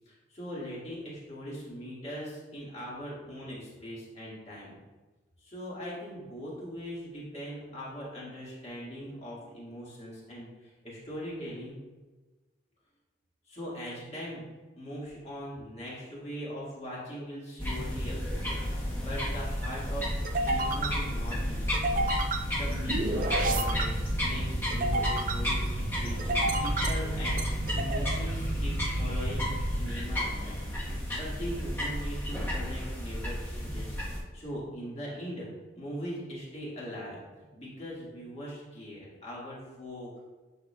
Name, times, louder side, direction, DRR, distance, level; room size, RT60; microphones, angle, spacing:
voice 1, 0.1-4.7 5.4-11.8 13.5-14.4 14.8-20.1 20.3-30.5 30.8-33.9 34.3-35.5 35.7-40.2, equal, 35° left, -6 dB, 1.8 m, -41 dB
sound 1, 17.6-34.2, equal, 10° left, 1.1 m, -32 dB
sound 2, 18.3-30.7, right 2 dB, 45° right, 0.4 m, -33 dB
9.4 x 5.1 x 2.3 m, 1.2 s
head